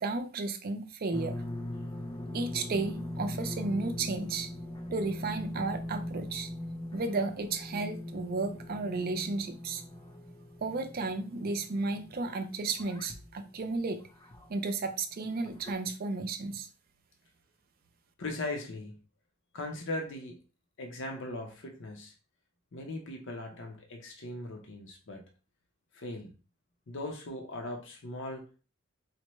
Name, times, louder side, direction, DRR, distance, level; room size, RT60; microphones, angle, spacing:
voice 1, 0.0-1.3 2.3-4.5 4.9-6.5 6.9-9.8 10.6-14.0 14.5-16.7, right 3 dB, 45° right, 8 dB, 0.4 m, -33 dB
sound 1, 1.1-14.6 15.2-15.7, left 1 dB, 20° left, 0.5 m, -41 dB
voice 2, 18.2-19.0 19.5-20.4 20.8-22.1 22.7-25.2 25.9-26.3 26.9-28.5, left 2 dB, 60° left, 3 dB, 0.7 m, -39 dB
4.1 x 2.2 x 3.0 m, 0.34 s
head